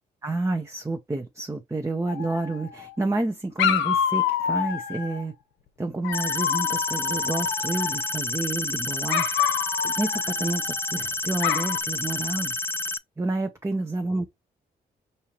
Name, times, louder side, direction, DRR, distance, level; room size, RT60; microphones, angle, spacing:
voice 1, 0.2-5.3 5.8-9.3 9.8-12.5 13.2-14.2, right 2 dB, 15° right, 0.8 m, -29 dB
Dog, 2.1-2.9 3.6-5.2 6.0-8.2 9.1-11.0 11.4-11.8, left 8 dB, 85° left, 0.5 m, -27 dB
sound 1, 6.1-13.0, left 2 dB, 10° left, 0.3 m, -30 dB
5.5 x 2.8 x 3.0 m
supercardioid pair, 55°, 19 cm